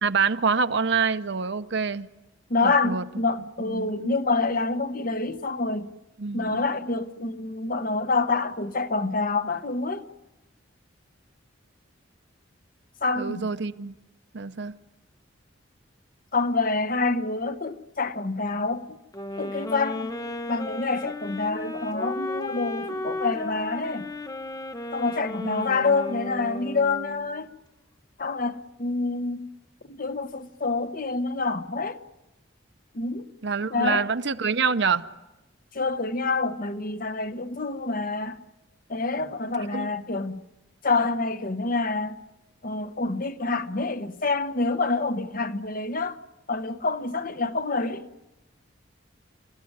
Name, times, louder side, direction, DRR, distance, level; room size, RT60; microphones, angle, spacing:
voice 1, 0.0-2.1 2.6-3.0 3.6-4.2 6.2-6.6 13.1-13.9 14.3-14.8 25.4-25.8 33.4-35.1 39.7-39.9, right 5 dB, 60° right, 0.7 m, -26 dB
voice 2, 2.5-5.9 6.3-10.1 13.0-13.5 16.3-19.0 19.4-20.1 20.5-24.1 24.9-27.5 28.2-29.5 29.8-32.0 32.9-33.3 33.7-34.1 35.7-38.4 38.9-40.4 40.8-42.2 42.6-46.2 46.5-48.1, left 3 dB, 45° left, 1.0 m, -27 dB
sound 1, 19.1-27.3, left 2 dB, 20° left, 0.9 m, -34 dB
28.0 x 15.5 x 9.6 m
head